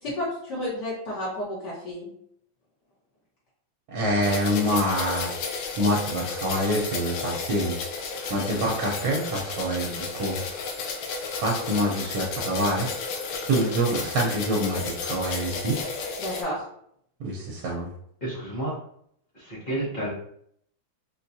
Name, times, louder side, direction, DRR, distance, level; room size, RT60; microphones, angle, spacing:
voice 1, 0.0-2.1 16.2-16.6, left 1 dB, 60° left, -7 dB, 1.6 m, -31 dB
voice 2, 3.9-5.3 5.7-7.8 8.3-10.4 11.4-12.9 13.5-15.8 17.2-17.9, equal, 80° right, -2 dB, 1.5 m, -26 dB
sound 1, 4.2-16.4, left 4 dB, 75° left, 1.3 m, -33 dB
voice 3, 18.2-18.8 19.3-20.1, right 1 dB, 35° left, -9 dB, 0.8 m, -31 dB
4.2 x 2.3 x 2.6 m, 0.68 s
omnidirectional pair, 2.2 m